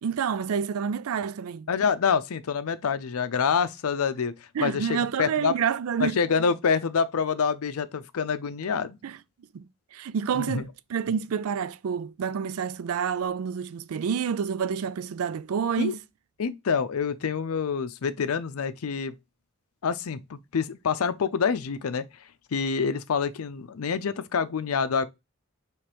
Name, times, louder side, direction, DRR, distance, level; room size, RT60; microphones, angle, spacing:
voice 1, 0.0-1.7 4.5-6.2 9.0-9.2 9.5-9.6 9.9-16.0, right 7 dB, 80° right, 0.4 m, -28 dB
voice 2, 1.7-4.3 4.6-5.6 6.0-9.0 10.4-10.6 15.8-15.9 16.4-19.2 19.8-22.1 22.5-25.1, left 6 dB, 90° left, 0.5 m, -26 dB
4.9 x 3.2 x 2.9 m
head